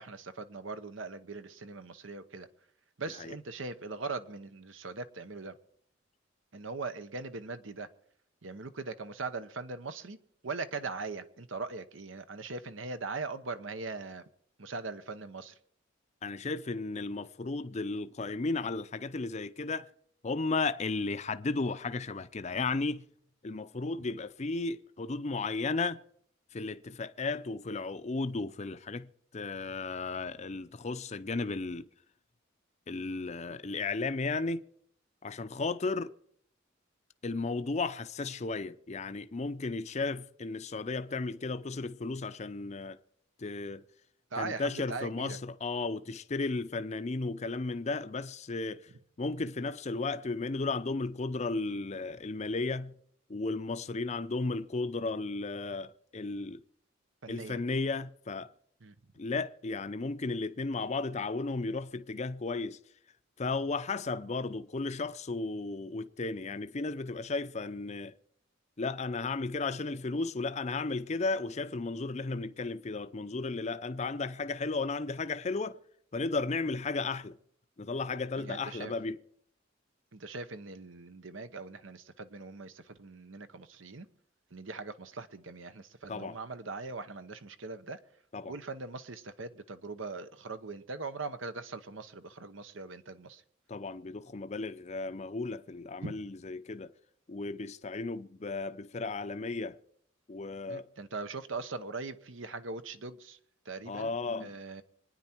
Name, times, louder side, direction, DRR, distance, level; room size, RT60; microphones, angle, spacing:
voice 1, 0.0-2.5 3.0-5.6 6.5-7.9 8.4-10.2 10.4-14.2 14.6-15.6 44.3-45.4 57.2-57.6 58.8-58.9 78.4-78.9 80.1-84.1 84.5-88.0 88.4-93.4 96.0-96.1 100.7-103.4 103.6-104.1 104.4-104.8, right 3 dB, 80° right, 1.0 m, -40 dB
voice 2, 16.2-19.9 20.2-23.0 23.4-26.0 26.5-31.9 32.9-34.7 35.2-36.1 37.2-43.0 43.4-43.8 44.4-48.9 49.2-52.9 53.3-56.6 57.3-58.5 59.2-62.8 63.4-68.1 68.8-75.8 76.1-77.4 77.8-79.2 86.1-86.4 88.3-88.6 93.7-96.9 97.3-99.8 100.3-100.9 103.9-104.5, left 3 dB, 35° left, 0.5 m, -34 dB
25.5 x 9.9 x 4.5 m
head